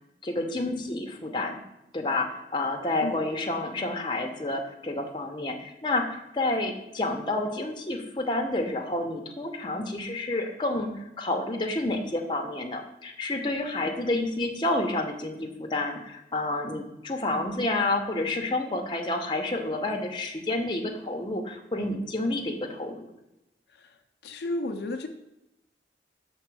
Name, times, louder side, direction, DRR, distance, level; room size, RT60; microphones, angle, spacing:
voice 1, 0.2-1.6 1.9-23.1, left 2 dB, 25° left, 2 dB, 0.7 m, -29 dB
voice 2, 24.2-25.1, left 2 dB, 70° left, 6 dB, 0.5 m, -32 dB
6.0 x 3.7 x 6.1 m, 0.90 s
head